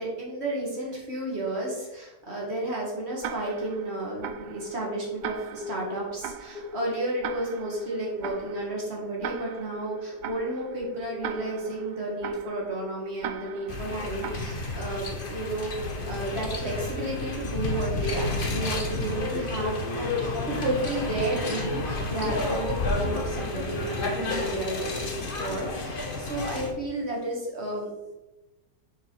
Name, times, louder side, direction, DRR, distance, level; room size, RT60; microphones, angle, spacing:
voice 1, 0.0-28.1, right 2 dB, 35° right, -3 dB, 2.2 m, -32 dB
Tick-tock, 3.2-15.1, right 8 dB, 75° right, 1.1 m, -40 dB
sound 1, 5.6-6.1 6.5-14.0 14.3-14.5 14.7-14.8 15.2-17.3, left 4 dB, 70° left, 2.7 m, -41 dB
sound 2, 13.7-26.7, left 2 dB, 35° left, 1.0 m, -31 dB
7.0 x 4.8 x 4.8 m, 1.1 s
omnidirectional pair, 1.9 m